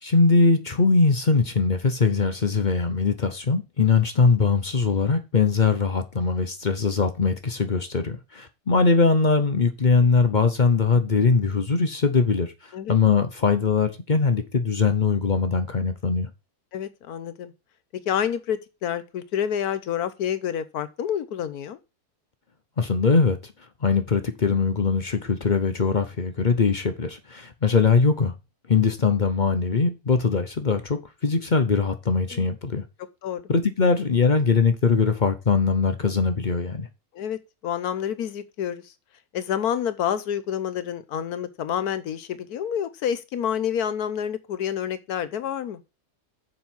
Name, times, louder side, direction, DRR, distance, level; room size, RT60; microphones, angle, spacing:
voice 1, 0.0-16.3 22.8-23.5 23.8-28.3 28.7-32.8 33.5-36.9, left 4 dB, 40° left, 0.7 m, -21 dB
voice 2, 16.7-17.5 18.1-21.8 32.3-32.5 33.2-33.5 37.1-38.9 39.3-45.8, left 9 dB, 80° left, 1.3 m, -28 dB
7.1 x 5.4 x 5.9 m
omnidirectional pair, 1.6 m